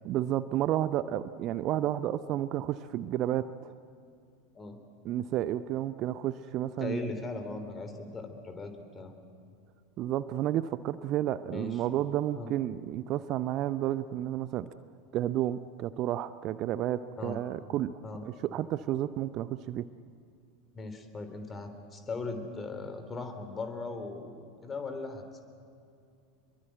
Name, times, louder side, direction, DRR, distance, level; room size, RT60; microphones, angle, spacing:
voice 1, 0.0-3.7 5.0-7.1 10.0-14.7 15.1-19.9, right 12 dB, 40° right, 14 dB, 0.6 m, -31 dB
voice 2, 6.8-9.1 11.5-11.8 12.3-12.5 17.2-17.4 18.0-18.2 20.7-25.4, left 3 dB, 20° left, 7 dB, 3.3 m, -39 dB
26.0 x 22.5 x 7.9 m, 2.4 s
figure-of-eight pair, 80°, 0 cm